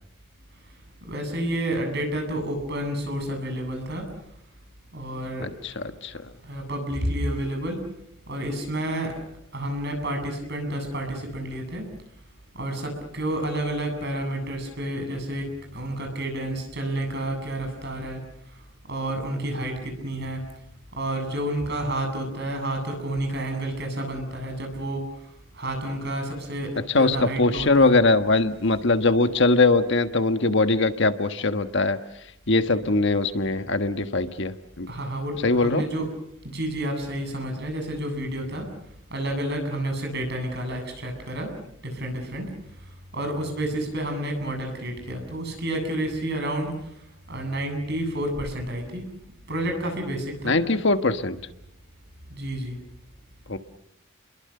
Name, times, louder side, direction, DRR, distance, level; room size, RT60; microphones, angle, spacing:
voice 1, 1.0-4.1 4.9-5.5 6.4-7.9 8.3-9.1 9.5-11.9 12.5-18.2 18.9-20.4 21.0-25.1 25.5-27.9 34.9-36.1 36.4-38.7 39.1-41.5 41.8-42.5 43.1-46.8 47.3-49.1 49.5-50.6 52.3-52.8, right 1 dB, 55° right, 4 dB, 8.0 m, -30 dB
voice 2, 5.4-6.1 26.9-32.0 32.5-34.9 35.4-35.8 50.4-51.4 53.5-53.6, left 3 dB, 60° left, 9 dB, 1.4 m, -21 dB
30.0 x 22.5 x 6.7 m, 0.77 s
head